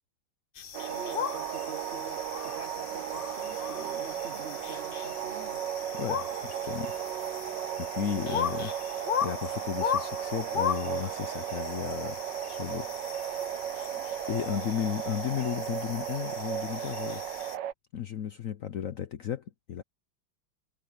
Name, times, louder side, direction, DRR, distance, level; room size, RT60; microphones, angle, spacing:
sound 1, 0.6-17.6, left 8 dB, 85° left, 0.4 m, -37 dB
sound 2, 0.7-17.7, right 11 dB, 70° right, 1.4 m, -35 dB
voice 1, 0.9-5.6 13.9-14.1, right 4 dB, 45° right, 0.9 m, -46 dB
voice 2, 5.9-6.9 7.8-8.7 9.2-12.2 12.5-12.9 14.3-17.2 17.9-19.8, left 9 dB, 60° left, 0.9 m, -34 dB
omnidirectional pair, 2.1 m